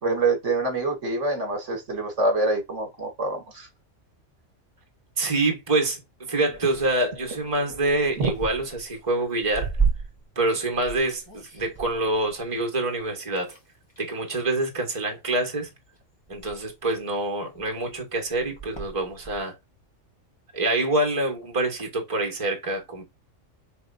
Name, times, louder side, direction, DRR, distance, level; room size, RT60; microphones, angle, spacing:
voice 1, 0.0-3.7 8.2-8.3, right 2 dB, 65° right, 1.7 m, -25 dB
voice 2, 5.2-6.0 6.3-9.7 10.3-13.5 14.0-15.7 16.3-19.5 20.5-23.0, right 2 dB, 25° right, 1.5 m, -26 dB
sound 1, 6.3-13.1 13.4-14.2 15.0-15.4 15.9-16.0 16.3-19.4, right 5 dB, 20° left, 1.6 m, -34 dB
5.1 x 3.4 x 2.6 m
omnidirectional pair, 1.4 m